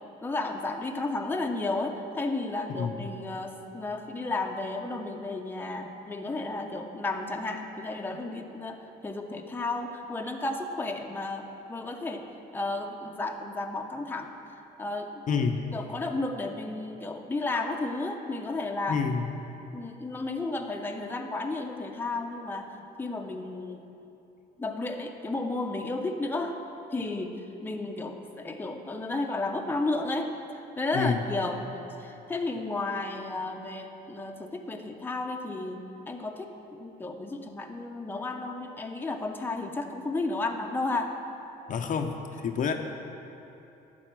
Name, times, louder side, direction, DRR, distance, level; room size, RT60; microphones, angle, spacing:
voice 1, 0.2-12.3 12.5-14.3 14.8-15.4 15.7-19.0 19.7-23.8 24.6-26.6 26.9-31.6 32.0-35.8 36.1-36.5 36.8-41.1, left 2 dB, 10° left, 3 dB, 0.7 m, -33 dB
voice 2, 2.7-3.1 15.3-15.8 18.9-19.3 30.9-31.3 41.7-42.1 42.4-42.7, left 6 dB, 50° left, 4 dB, 0.6 m, -28 dB
12.0 x 4.2 x 7.4 m, 2.9 s
cardioid pair, 110°, 17 cm